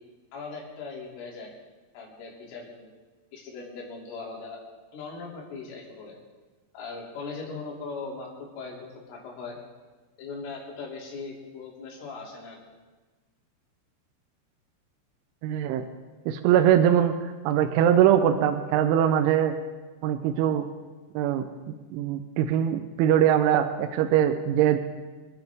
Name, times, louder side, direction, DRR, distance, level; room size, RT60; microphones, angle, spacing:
voice 1, 0.3-1.5 1.9-3.0 3.3-4.6 4.9-6.2 6.7-9.6 10.2-12.6, left 4 dB, 75° left, -3 dB, 5.3 m, -39 dB
voice 2, 15.4-15.8 16.3-17.2 17.4-19.5 20.0-20.7 21.2-21.4 21.9-24.8, right 10 dB, 80° right, 7 dB, 3.0 m, -22 dB
27.0 x 10.0 x 3.5 m, 1.3 s
omnidirectional pair, 5.7 m